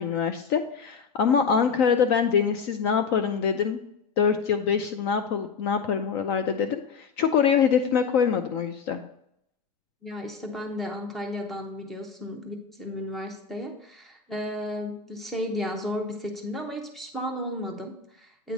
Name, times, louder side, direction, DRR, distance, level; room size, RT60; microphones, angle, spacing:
voice 1, 0.0-3.8 4.2-9.0, left 7 dB, 40° left, 9 dB, 0.4 m, -24 dB
voice 2, 10.0-18.5, left 1 dB, ahead, 3 dB, 0.7 m, -34 dB
8.9 x 3.2 x 5.1 m, 0.75 s
supercardioid pair, 160°, 21 cm